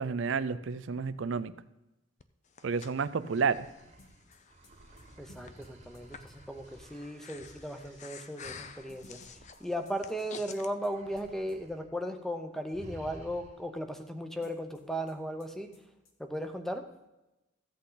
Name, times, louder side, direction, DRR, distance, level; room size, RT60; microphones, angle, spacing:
voice 1, 0.0-1.5 2.6-3.7, right 5 dB, 70° right, 15 dB, 0.4 m, -30 dB
Breathing, 2.2-10.7, left 6 dB, 35° left, 0.5 m, -50 dB
sound 1, 3.1-10.3 10.7-11.9 12.2-12.4 12.7-13.8, right 1 dB, 30° right, 1.2 m, -55 dB
sound 2, 4.0-6.4 8.9-11.2 11.5-11.6 14.4-15.1 15.4-15.5 15.7-16.1, left 2 dB, 85° left, 1.6 m, -59 dB
voice 2, 5.2-9.2 9.6-15.7 16.2-16.9, equal, ahead, 6 dB, 0.7 m, -36 dB
14.5 x 8.3 x 3.9 m, 0.97 s
head